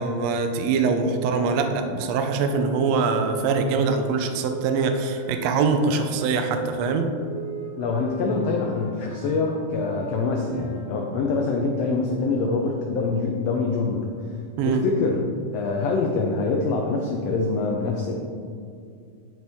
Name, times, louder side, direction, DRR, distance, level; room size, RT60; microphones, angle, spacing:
voice 1, 0.0-7.1 14.6-14.8, right 4 dB, 90° right, 6 dB, 1.4 m, -23 dB
sound 1, 1.3-11.0, right 3 dB, 65° right, 3.1 m, -40 dB
voice 2, 7.7-14.1 14.6-15.2 15.5-18.1, left 4 dB, 85° left, 0 dB, 1.4 m, -25 dB
11.5 x 4.5 x 3.5 m, 2.3 s
omnidirectional pair, 3.7 m